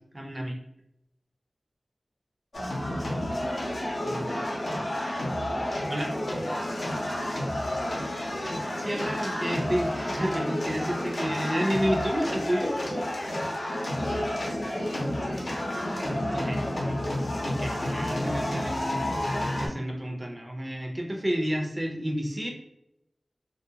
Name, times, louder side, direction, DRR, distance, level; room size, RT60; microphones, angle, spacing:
voice 1, 0.1-0.6 4.1-4.4 5.9-6.1 8.7-12.7 16.3-16.6 17.4-19.0 19.6-22.5, equal, 30° right, 1 dB, 0.5 m, -30 dB
sound 1, 2.5-19.7, left 1 dB, 75° left, 0.6 m, -30 dB
voice 2, 14.0-15.9 16.3-16.7, equal, 35° left, -1 dB, 0.7 m, -39 dB
2.3 x 2.2 x 2.7 m, 0.83 s
wide cardioid pair, 50°, 0 cm